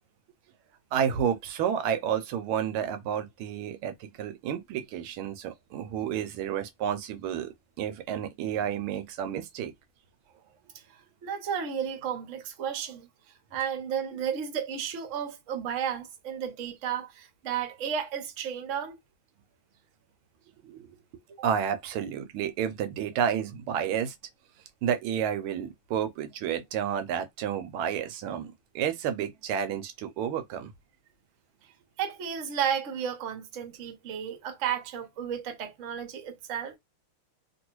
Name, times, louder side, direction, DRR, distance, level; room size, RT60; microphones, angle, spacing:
voice 1, 0.9-9.7 20.6-20.9 21.4-24.1 24.8-30.7, right 8 dB, 85° right, 1.5 m, -30 dB
voice 2, 11.2-13.1 13.5-19.0 32.0-36.7, right 8 dB, 50° right, 0.9 m, -33 dB
3.0 x 2.8 x 3.0 m
omnidirectional pair, 2.3 m